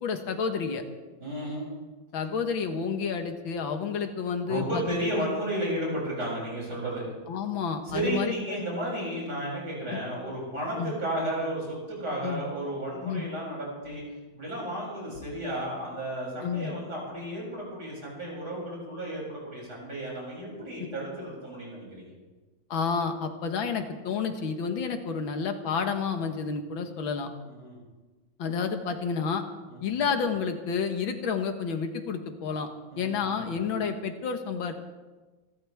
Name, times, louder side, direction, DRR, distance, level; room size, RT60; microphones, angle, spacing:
voice 1, 0.0-0.8 2.1-5.3 7.3-8.6 9.9-10.0 10.8-10.9 12.2-12.4 13.0-13.3 16.4-16.7 22.7-27.3 28.4-29.4 29.8-32.7 33.0-34.7, left 6 dB, 80° left, 6 dB, 2.1 m, -30 dB
voice 2, 1.2-1.7 4.5-7.1 7.8-14.0 14.3-22.1 27.4-27.8 29.7-29.9 32.9-33.4, right 1 dB, 55° right, -4 dB, 7.9 m, -33 dB
28.0 x 13.5 x 3.5 m, 1.2 s
omnidirectional pair, 2.1 m